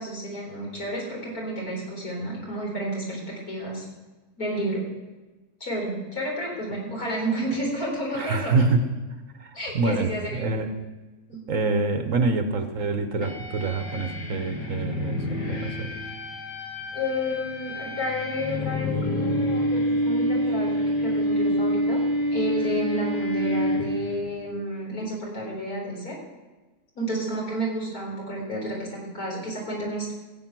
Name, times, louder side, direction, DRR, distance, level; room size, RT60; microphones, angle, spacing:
voice 1, 0.0-3.8 4.4-4.8 5.6-8.6 9.5-10.5 11.3-11.4 16.9-22.0 22.3-26.1 27.0-30.1, equal, 60° left, -3 dB, 4.5 m, -31 dB
voice 2, 8.1-8.9 9.4-10.7 11.3-15.9, right 3 dB, 55° right, 7 dB, 1.2 m, -26 dB
sound 1, 13.2-24.3, equal, 85° left, 2.7 m, -27 dB
15.5 x 8.7 x 6.0 m, 1.2 s
omnidirectional pair, 1.7 m